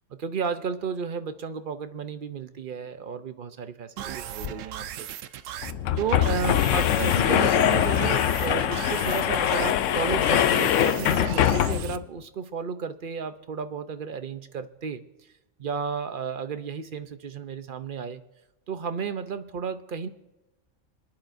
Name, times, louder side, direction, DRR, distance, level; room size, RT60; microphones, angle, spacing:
voice 1, 0.2-5.5 6.0-15.0 15.6-18.2 18.7-20.1, right 6 dB, 50° right, 10 dB, 0.7 m, -33 dB
sound 1, 4.0-12.0, right 10 dB, 75° right, 0.9 m, -37 dB
sound 2, 4.4-4.5 4.8-4.9 5.6-12.0, left 11 dB, 70° left, 0.9 m, -23 dB
26.0 x 10.5 x 2.6 m, 1.0 s
omnidirectional pair, 1.4 m